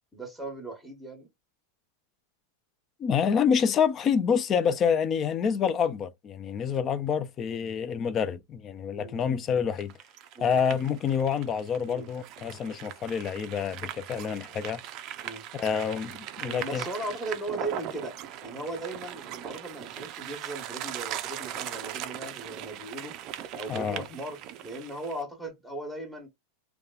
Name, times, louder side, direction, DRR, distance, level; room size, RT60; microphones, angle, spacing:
voice 1, 0.1-1.3 7.5-7.7 9.0-9.4 10.3-10.5 11.9-12.1 14.1-14.2 15.2-15.4 16.4-23.2 23.6-26.3, right 2 dB, 5° left, 1.1 m, -38 dB
voice 2, 3.0-9.9 10.4-14.8 15.5-16.8 23.7-24.0, left 7 dB, 30° left, 0.3 m, -27 dB
sound 1, 9.8-25.2, right 11 dB, 40° right, 0.4 m, -39 dB
2.9 x 2.1 x 2.3 m
supercardioid pair, 135°, 0 cm